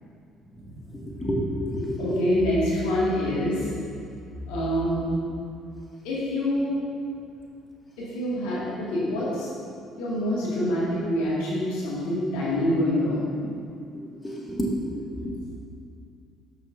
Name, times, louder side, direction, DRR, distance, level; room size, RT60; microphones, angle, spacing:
voice 1, 1.2-2.0 14.2-14.7 15.0-15.1, equal, 20° left, -4 dB, 2.0 m, -28 dB
voice 2, 2.0-3.7 4.5-5.0 6.0-6.8 8.0-9.5 10.0-13.2, left 1 dB, 70° left, -7 dB, 2.1 m, -26 dB
12.5 x 6.7 x 2.7 m, 2.4 s
hypercardioid pair, 55°, 0 cm